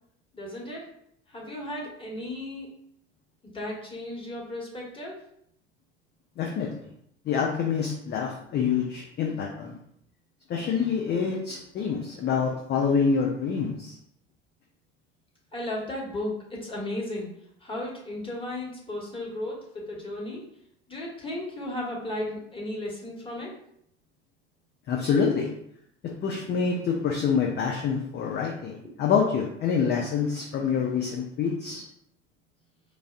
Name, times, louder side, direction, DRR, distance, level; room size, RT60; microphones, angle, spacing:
voice 1, 0.3-0.8 1.3-2.7 3.4-5.2 15.5-17.3 17.6-20.5 20.9-23.6, left 1 dB, 15° left, -3 dB, 1.4 m, -35 dB
voice 2, 6.4-6.7 7.3-9.8 10.5-13.9 24.9-25.5 26.0-31.8, left 6 dB, 30° left, 0 dB, 0.6 m, -26 dB
4.7 x 2.6 x 2.4 m, 0.71 s
figure-of-eight pair, 70°, 34 cm